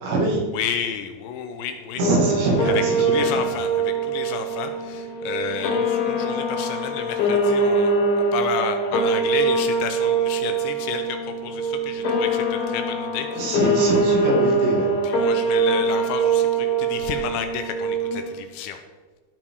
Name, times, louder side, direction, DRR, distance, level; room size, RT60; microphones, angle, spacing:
voice 1, 0.0-0.4 1.9-3.4 13.3-14.9, right 2 dB, 80° right, -2 dB, 4.9 m, -23 dB
voice 2, 0.5-2.0 2.7-2.8 3.1-13.6 15.0-18.8, left 8 dB, 80° left, 7 dB, 2.8 m, -31 dB
sound 1, 2.0-18.4, right 2 dB, 55° left, 3.3 m, -23 dB
16.5 x 5.8 x 4.7 m, 1.3 s
omnidirectional pair, 5.5 m